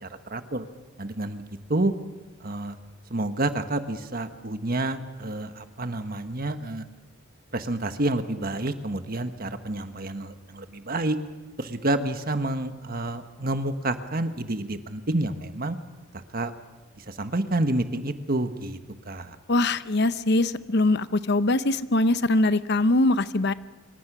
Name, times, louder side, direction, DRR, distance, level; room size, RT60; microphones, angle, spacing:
voice 1, 0.0-0.6 1.0-1.4 1.7-1.9 2.4-2.8 3.1-6.9 7.5-11.2 11.6-15.8 16.1-16.5 17.0-18.8 19.0-19.4, right 2 dB, 45° right, 9 dB, 1.4 m, -29 dB
voice 2, 19.5-23.5, left 2 dB, 55° left, 13 dB, 0.8 m, -22 dB
26.0 x 24.5 x 6.2 m, 1.2 s
head